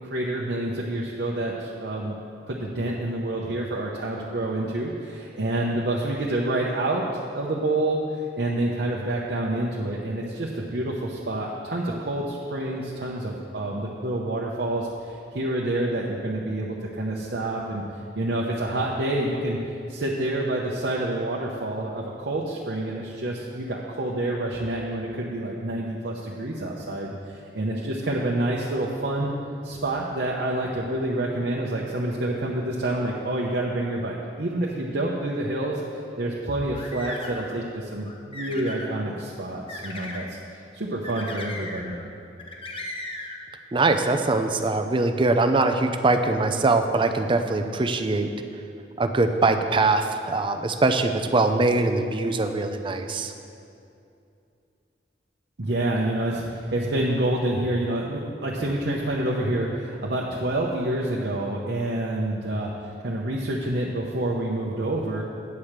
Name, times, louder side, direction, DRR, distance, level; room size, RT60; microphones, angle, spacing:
voice 1, 0.0-2.2 2.5-7.1 7.3-17.8 18.1-19.6 19.9-29.3 29.6-35.8 36.2-40.4 40.7-42.0 55.6-62.7 63.0-65.2, right 1 dB, 65° right, -3 dB, 0.8 m, -28 dB
sound 1, 36.5-37.5 38.1-38.9 39.7-40.3 41.0-42.0 42.4-43.4, left 2 dB, 30° left, 0.9 m, -37 dB
voice 2, 43.7-48.3 49.0-53.3, right 3 dB, 30° right, 7 dB, 0.5 m, -22 dB
9.4 x 5.0 x 7.3 m, 2.6 s
head